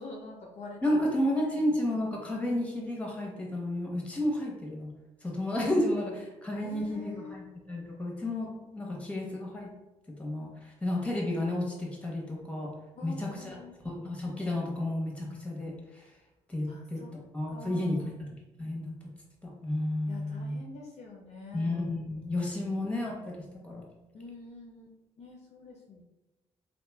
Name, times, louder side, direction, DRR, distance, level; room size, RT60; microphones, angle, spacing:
voice 1, 0.0-0.8 1.4-1.6 6.6-7.3 13.0-13.7 16.7-17.1 17.5-18.1 20.1-21.8 24.1-26.0, left 3 dB, 45° left, -2 dB, 0.5 m, -46 dB
voice 2, 0.8-4.9 5.2-9.7 10.2-10.5 10.8-12.7 13.0-13.6 13.8-15.7 16.5-17.0 17.3-18.3 18.6-18.9 19.4-20.6 21.5-23.8, left 1 dB, 10° left, -2 dB, 0.9 m, -32 dB
3.0 x 2.1 x 2.2 m, 1.0 s
hypercardioid pair, 45°, 15 cm